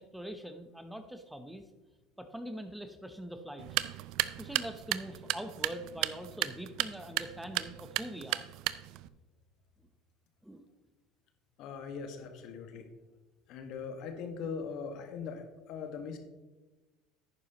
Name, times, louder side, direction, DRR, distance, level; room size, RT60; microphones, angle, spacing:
voice 1, 0.0-1.6 2.2-3.8 4.4-8.4 10.4-10.6, right 1 dB, 5° right, 8 dB, 0.8 m, -43 dB
sound 1, 3.6-9.1, right 16 dB, 65° right, 0.4 m, -35 dB
voice 2, 11.6-12.9 13.5-16.2, left 5 dB, 60° left, 5 dB, 1.5 m, -40 dB
11.0 x 9.2 x 3.0 m, 1.2 s
hypercardioid pair, 85°, 0 cm